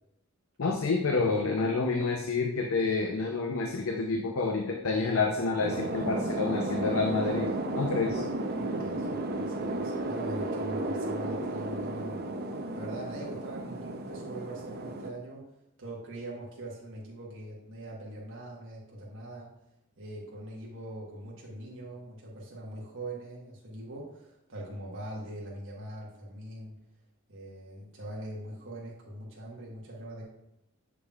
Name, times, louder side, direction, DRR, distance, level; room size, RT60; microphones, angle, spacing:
voice 1, 0.6-8.2, left 4 dB, 70° left, 3 dB, 0.6 m, -28 dB
sound 1, 5.6-15.1, right 2 dB, 50° right, 0.6 m, -33 dB
voice 2, 8.5-12.2 12.5-15.5 15.8-19.5 20.0-26.8 27.3-30.2, right 1 dB, 65° right, -4 dB, 1.3 m, -42 dB
7.1 x 6.5 x 2.4 m, 0.83 s
head